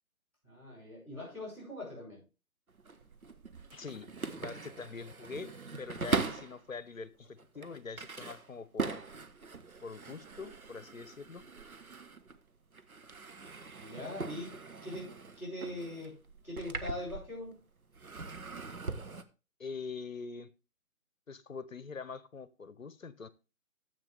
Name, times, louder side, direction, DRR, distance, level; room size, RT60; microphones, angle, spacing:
voice 1, 0.4-2.2 13.8-16.2 16.4-17.6, left 1 dB, 5° right, -10 dB, 7.4 m, -42 dB
sound 1, 2.7-6.6 7.2-12.5 12.7-17.6 17.9-19.2, right 4 dB, 80° right, 1.2 m, -40 dB
voice 2, 3.7-5.5 5.8-9.0 9.8-11.4 19.6-20.5 21.3-23.3, left 5 dB, 65° left, 17 dB, 1.0 m, -44 dB
13.5 x 8.1 x 3.4 m, 0.31 s
figure-of-eight pair, 145°, 42 cm